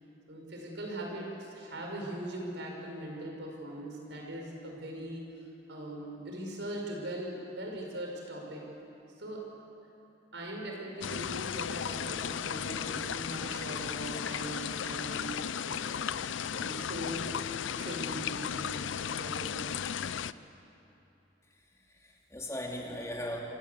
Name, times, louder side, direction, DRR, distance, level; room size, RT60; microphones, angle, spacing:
voice 1, 0.3-5.2 5.7-8.6 9.2-9.5 10.3-17.3 17.7-19.8, right 1 dB, 75° right, 0 dB, 5.4 m, -40 dB
sound 1, 11.0-20.3, left 8 dB, 85° left, 0.5 m, -35 dB
voice 2, 21.6-23.4, left 1 dB, 15° left, -1 dB, 2.7 m, -39 dB
25.5 x 17.5 x 8.3 m, 2.9 s
head